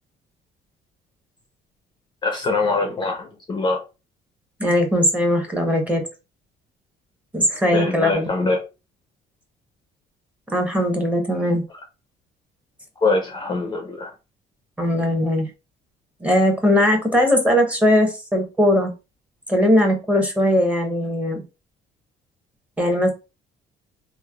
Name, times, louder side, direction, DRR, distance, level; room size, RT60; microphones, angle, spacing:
voice 1, 2.2-3.8 7.7-8.6 13.0-14.1, left 3 dB, 25° left, 0.5 m, -23 dB
voice 2, 4.6-6.0 7.3-8.3 10.5-11.6 14.8-15.5 16.2-18.9 19.5-21.4 22.8-23.1, left 1 dB, 10° right, 0.8 m, -19 dB
3.2 x 2.0 x 2.2 m
cardioid pair, 110°, 17 cm